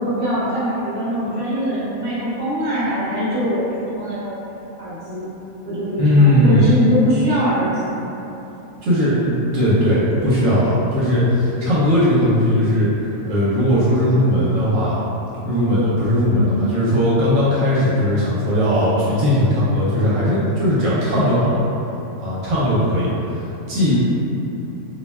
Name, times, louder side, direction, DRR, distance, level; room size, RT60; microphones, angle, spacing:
voice 1, 0.0-3.7 3.9-4.4 4.8-5.3 5.7-8.0 16.2-16.6, equal, 35° right, -9 dB, 0.7 m, -22 dB
voice 2, 6.0-6.7 8.8-15.0 15.4-21.6 22.2-23.9, left 1 dB, 70° right, -8 dB, 0.9 m, -18 dB
2.5 x 2.1 x 3.2 m, 3.0 s
omnidirectional pair, 1.4 m